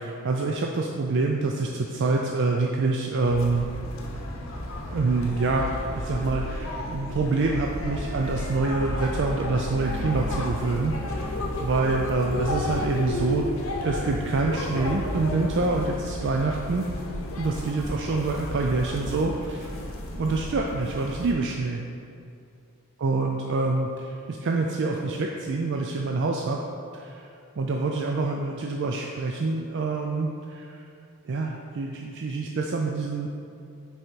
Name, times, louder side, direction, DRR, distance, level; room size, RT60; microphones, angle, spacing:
voice 1, 0.0-3.6 4.9-11.3 11.6-13.5 13.8-16.9 17.4-19.7 20.2-21.8 23.0-26.6 26.9-27.2 27.6-30.8 31.3-33.3, right 3 dB, 55° right, 0 dB, 0.4 m, -26 dB
sound 1, 3.3-21.3, left 1 dB, 60° left, 0.9 m, -32 dB
6.4 x 4.8 x 4.5 m, 2.5 s
head